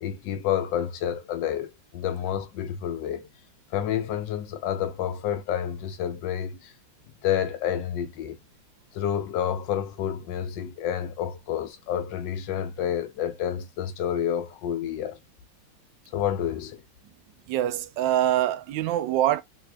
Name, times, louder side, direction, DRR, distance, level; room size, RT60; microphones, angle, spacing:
voice 1, 0.0-3.3 3.7-6.7 7.2-8.4 8.9-15.2 16.1-16.8, left 9 dB, 70° left, 1.2 m, -29 dB
voice 2, 17.5-19.4, right 12 dB, 75° right, 1.1 m, -24 dB
4.2 x 2.9 x 2.2 m
omnidirectional pair, 2.3 m